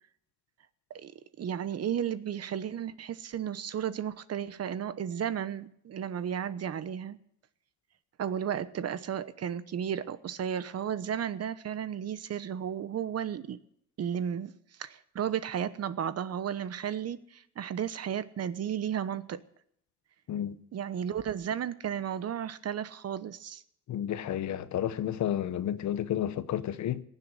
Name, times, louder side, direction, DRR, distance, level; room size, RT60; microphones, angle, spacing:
voice 1, 1.4-7.2 8.2-13.6 14.0-14.5 14.8-19.4 20.7-23.6, right 9 dB, 55° right, 1.0 m, -33 dB
voice 2, 23.9-27.0, left 10 dB, 70° left, 1.0 m, -31 dB
18.0 x 7.7 x 9.2 m
cardioid pair, 90°, 30 cm